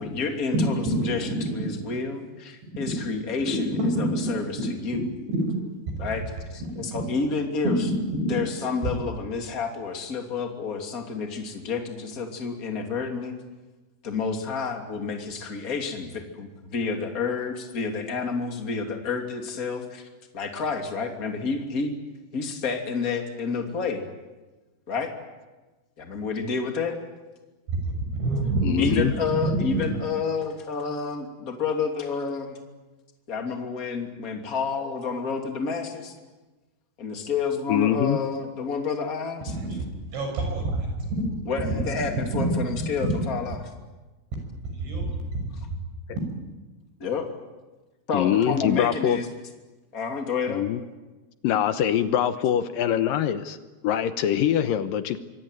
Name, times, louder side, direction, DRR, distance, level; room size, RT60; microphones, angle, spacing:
voice 1, 0.0-5.0 6.0-6.2 6.5-7.7 8.3-13.4 14.0-20.1 20.3-22.0 22.3-24.0 24.9-25.1 26.0-27.0 28.8-32.6 33.3-36.1 37.0-39.6 41.5-43.6 47.0-47.3 48.1-49.3 49.9-50.7, left 5 dB, 25° left, 3 dB, 2.6 m, -29 dB
voice 2, 0.5-1.0 1.3-1.4 2.6-2.7 3.5-4.1 4.6-4.7 4.9-5.0 5.3-5.6 7.6-8.3 27.7-27.8 28.1-29.0 29.4-29.9 39.6-39.8 40.1-40.9 41.6-41.7 42.3-42.5 44.7-45.2, right 1 dB, 85° right, 4 dB, 8.6 m, -26 dB
voice 3, 28.6-29.1 37.7-38.2 48.1-49.2 50.5-50.8 51.4-53.6 53.8-55.2, left 10 dB, 70° left, 10 dB, 2.3 m, -23 dB
25.5 x 23.0 x 9.3 m, 1.2 s
omnidirectional pair, 5.0 m